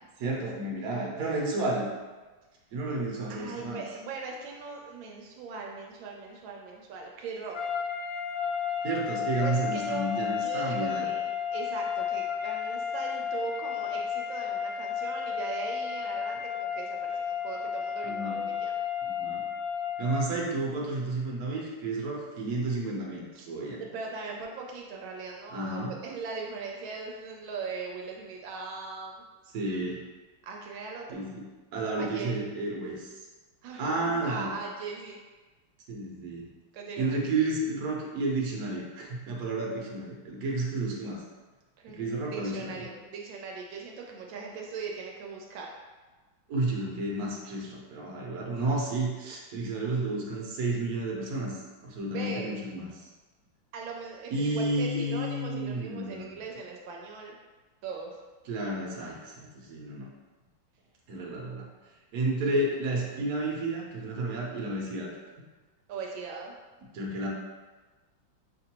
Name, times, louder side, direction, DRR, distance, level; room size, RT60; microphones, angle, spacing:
voice 1, 0.2-1.9 2.7-3.8 8.8-11.1 18.0-18.4 19.2-19.4 20.0-23.8 25.5-25.9 29.5-30.0 31.1-31.5 31.7-33.1 33.8-34.5 35.9-36.5 37.0-41.2 41.9-42.8 46.5-53.1 54.3-56.2 58.4-60.1 61.1-61.7 62.1-65.1 66.9-67.3, right 2 dB, 60° right, -2 dB, 1.2 m, -31 dB
voice 2, 3.3-7.7 9.4-10.1 10.4-18.7 23.3-23.5 23.8-29.2 30.4-31.3 32.0-32.3 33.6-35.2 36.7-37.2 41.8-45.7 52.0-52.6 53.7-57.3 57.8-58.2 65.9-66.6, right 4 dB, 80° right, 0 dB, 1.3 m, -39 dB
sound 1, 7.5-20.4, left 7 dB, 75° left, 1.4 m, -32 dB
6.0 x 2.6 x 2.9 m, 1.3 s
omnidirectional pair, 2.1 m